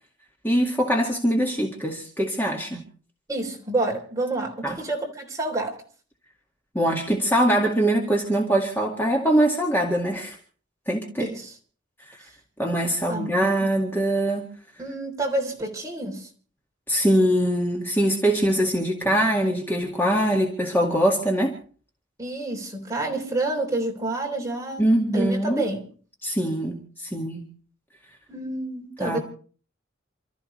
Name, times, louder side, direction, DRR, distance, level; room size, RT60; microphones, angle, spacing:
voice 1, 0.4-2.8 4.6-4.8 6.7-10.4 10.9-11.3 12.1-12.2 12.6-14.4 16.9-21.5 24.8-25.6 26.2-27.5 29.0-29.2, right 1 dB, 10° left, 2.0 m, -23 dB
voice 2, 3.3-5.8 11.2-11.5 13.1-13.7 14.8-16.3 22.2-24.8 25.1-25.8 28.3-29.2, right 2 dB, 15° right, 3.6 m, -28 dB
29.0 x 13.5 x 3.3 m
head